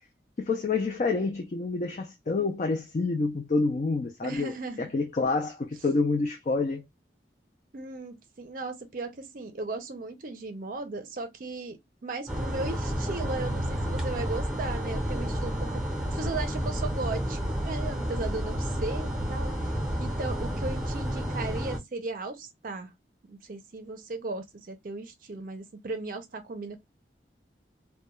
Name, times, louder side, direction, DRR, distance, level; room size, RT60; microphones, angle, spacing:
voice 1, 0.4-6.8, left 3 dB, 40° left, 0.4 m, -28 dB
voice 2, 4.2-4.9 7.7-19.7 20.0-22.9 23.3-26.9, right 3 dB, 50° right, 0.5 m, -36 dB
sound 1, 12.3-21.8, equal, 5° right, 0.7 m, -30 dB
2.3 x 2.1 x 3.0 m
head